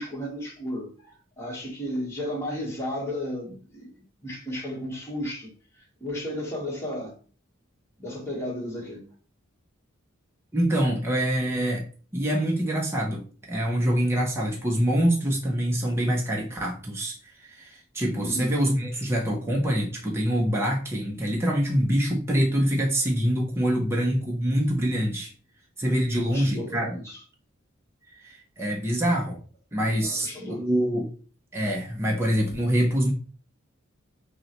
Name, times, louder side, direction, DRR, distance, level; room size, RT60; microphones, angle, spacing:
voice 1, 0.0-3.9 4.2-5.5 6.0-7.1 8.0-9.0 18.2-18.5 26.3-27.2 30.0-30.6, left 1 dB, 15° left, 1.2 m, -33 dB
voice 2, 10.5-11.9 12.1-25.3 25.8-27.0 28.1-29.4 29.7-31.1 31.5-33.1, equal, 10° right, 0.6 m, -25 dB
5.3 x 2.1 x 2.9 m
head